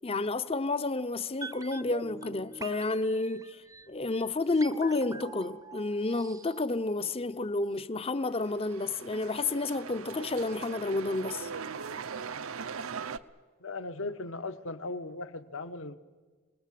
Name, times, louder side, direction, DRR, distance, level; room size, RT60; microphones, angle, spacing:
voice 1, 0.0-11.5, left 2 dB, 25° left, 0.7 m, -30 dB
sound 1, 1.4-7.4 7.7-7.8, right 3 dB, 15° right, 0.7 m, -46 dB
sound 2, 8.2-13.2, right 6 dB, 70° right, 0.8 m, -40 dB
voice 2, 13.6-16.0, left 2 dB, 65° left, 1.2 m, -38 dB
27.5 x 20.0 x 7.7 m
head